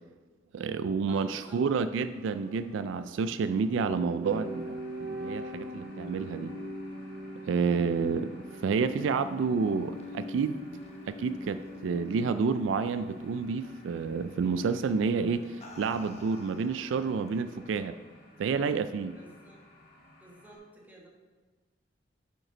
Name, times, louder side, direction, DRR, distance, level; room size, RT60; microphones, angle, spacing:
voice 1, 0.5-6.5 7.5-10.8 11.1-18.0 18.4-19.2, right 5 dB, 75° right, 12 dB, 0.3 m, -29 dB
voice 2, 1.1-1.6 19.1-19.6 20.2-21.1, right 2 dB, 10° right, -3 dB, 1.6 m, -53 dB
sound 1, 1.9-16.0 16.2-16.3, equal, 55° right, 2.1 m, -43 dB
sound 2, 4.2-20.6, left 1 dB, 50° left, 1.9 m, -57 dB
sound 3, 9.5-12.4 12.8-13.2 14.4-14.6 15.3-17.4, left 2 dB, 35° left, 0.9 m, -53 dB
7.5 x 5.3 x 4.9 m, 1.3 s
head